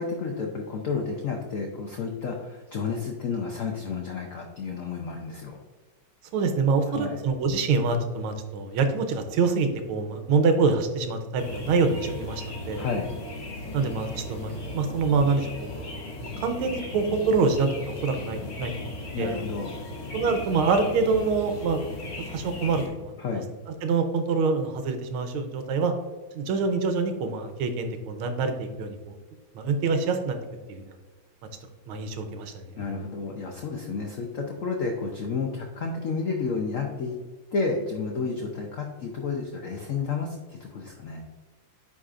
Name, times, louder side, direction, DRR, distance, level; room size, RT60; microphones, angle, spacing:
voice 1, 0.0-5.6 6.9-7.2 12.8-13.1 19.1-19.8 23.2-23.5 32.8-37.2 37.5-41.2, left 4 dB, 85° left, 1 dB, 0.7 m, -31 dB
voice 2, 6.3-12.8 13.7-15.9 16.2-18.9 19.2-19.4 20.1-21.8 22.3-23.4 23.8-25.9 26.3-29.2 29.5-30.4 30.7-30.9 31.9-32.8, right 4 dB, 85° right, 7 dB, 1.6 m, -26 dB
sound 1, 11.4-22.9, left 2 dB, 50° left, 1.7 m, -37 dB
9.4 x 4.2 x 2.5 m, 1.3 s
omnidirectional pair, 2.3 m